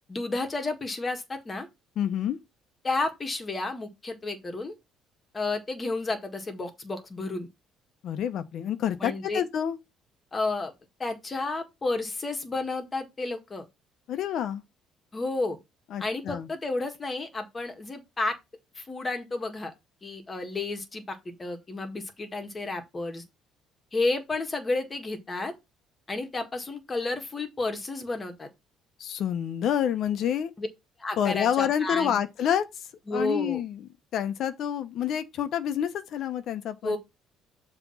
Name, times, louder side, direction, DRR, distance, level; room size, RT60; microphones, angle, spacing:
voice 1, 0.1-1.7 2.8-4.7 5.3-7.5 9.0-9.4 10.3-10.7 11.0-13.7 15.1-15.6 16.0-18.4 18.8-19.7 20.0-23.2 23.9-25.5 26.1-28.5 30.6-30.7 31.0-32.2 33.1-33.6 36.8-37.0, left 3 dB, 20° left, 1.8 m, -31 dB
voice 2, 2.0-2.4 8.0-9.8 14.1-14.6 15.9-16.5 29.0-30.5 31.2-32.6 33.1-33.8 34.1-37.0, left 9 dB, 60° left, 1.0 m, -28 dB
7.1 x 3.4 x 5.7 m
cardioid pair, 125°, 0 cm